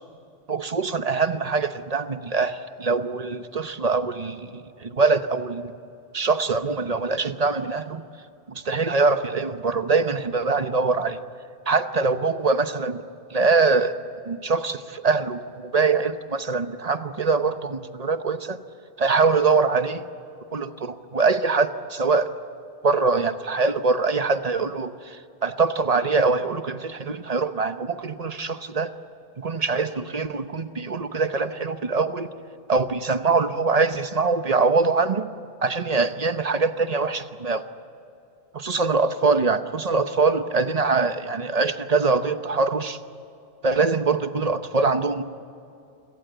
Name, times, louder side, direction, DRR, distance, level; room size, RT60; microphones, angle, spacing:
voice 1, 0.5-5.7 6.1-8.0 8.5-11.2 11.7-13.0 13.3-14.0 14.2-18.6 19.0-20.0 20.5-22.3 22.8-28.9 29.4-32.3 32.7-35.3 35.6-37.6 38.5-43.0 43.6-45.2, right 4 dB, 40° right, 10 dB, 1.0 m, -23 dB
28.0 x 17.5 x 8.1 m, 2.7 s
omnidirectional pair, 1.1 m